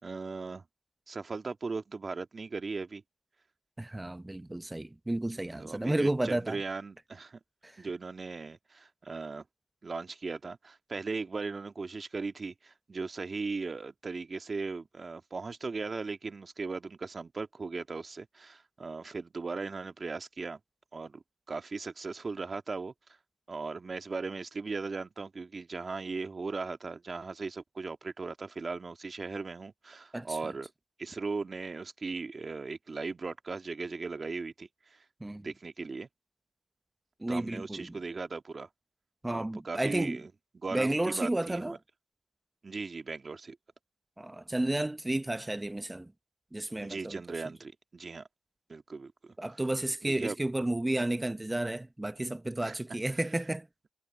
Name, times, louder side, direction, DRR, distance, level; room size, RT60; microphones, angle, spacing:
voice 1, 0.0-0.6 1.1-3.0 5.5-7.4 7.8-9.4 9.8-20.6 20.9-22.9 23.5-30.7 31.0-35.0 35.4-36.1 37.3-38.7 39.2-40.3 40.6-41.8 42.6-43.6 46.8-48.2 48.7-49.6 50.0-50.4 52.6-52.8 53.1-53.2, right 4 dB, 35° right, 1.9 m, -38 dB
voice 2, 3.8-6.6 7.6-7.7 30.1-30.5 35.2-35.5 37.2-38.0 39.2-40.2 40.7-41.8 44.2-46.1 46.5-47.2 49.4-53.7, right 1 dB, 15° right, 0.9 m, -32 dB
supercardioid pair, 65°, 0 cm